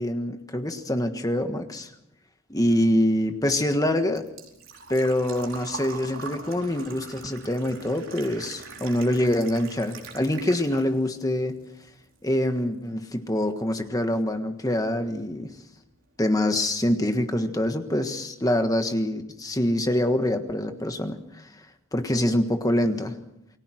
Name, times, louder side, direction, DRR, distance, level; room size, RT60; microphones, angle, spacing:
voice 1, 0.0-1.9 2.5-4.2 4.9-11.6 12.2-15.5 16.2-21.5 21.9-23.1, left 1 dB, 15° left, 7 dB, 1.5 m, -25 dB
Engine / Trickle dribble / Fill (with liquid), 3.2-11.1 11.5-12.5 12.7-12.8 14.8-14.9 15.0-15.4 15.7-15.8 16.1-16.2, right 4 dB, 65° right, 4.6 m, -42 dB
29.0 x 20.0 x 6.3 m, 0.82 s
head